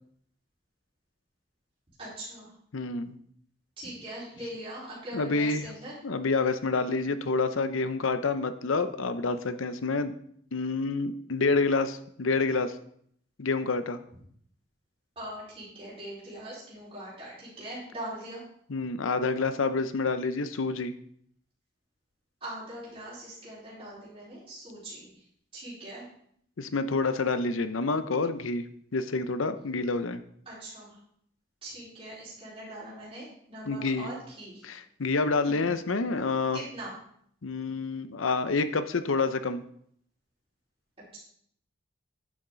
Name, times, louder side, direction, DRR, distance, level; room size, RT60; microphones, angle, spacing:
voice 1, 2.0-2.5 3.8-5.9 15.2-18.4 22.4-25.2 25.5-26.0 30.5-31.0 31.6-34.6 35.4-35.7 36.5-36.9, right 1 dB, 25° right, -9 dB, 4.3 m, -41 dB
voice 2, 2.7-3.2 5.1-5.7 6.0-10.1 10.5-12.8 13.4-14.0 18.7-20.9 26.6-28.7 28.9-30.2 33.7-34.1 34.6-36.6 37.4-39.6, left 3 dB, 90° left, 11 dB, 0.7 m, -28 dB
10.5 x 7.1 x 3.9 m, 0.66 s
head